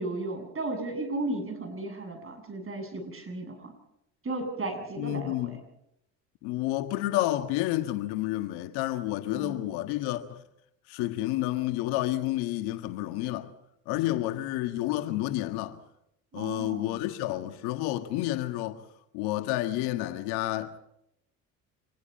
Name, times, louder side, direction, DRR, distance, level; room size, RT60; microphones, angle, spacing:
voice 1, 0.0-3.7 4.2-5.6 9.3-9.7 14.1-14.2 16.3-17.0, right 2 dB, 35° right, 7.8 m, -35 dB
voice 2, 5.0-5.6 6.4-10.4 10.9-13.5 13.9-15.8 16.3-18.8 19.1-20.8, left 15 dB, 80° left, 1.7 m, -30 dB
26.0 x 20.0 x 5.6 m
supercardioid pair, 70°, 38 cm